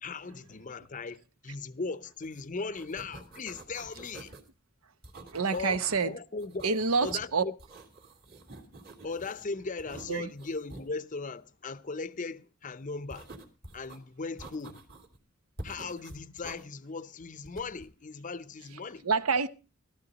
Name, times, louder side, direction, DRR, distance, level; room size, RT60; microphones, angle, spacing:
voice 1, 0.0-4.3 5.5-7.5 9.0-13.3 13.7-14.8 15.6-19.1, left 4 dB, 35° left, 0.6 m, -38 dB
sound 1, 2.2-2.4 2.6-4.5 5.0-6.0 6.4-7.3 7.6-9.4 9.8-10.9 13.1-14.0 14.4-15.2 15.6-16.6 17.4-17.9, right 2 dB, 45° right, 2.6 m, -47 dB
voice 2, 5.3-6.2 6.6-7.4 10.1-10.3 19.0-19.5, right 5 dB, 85° right, 0.8 m, -27 dB
16.5 x 13.0 x 4.0 m
head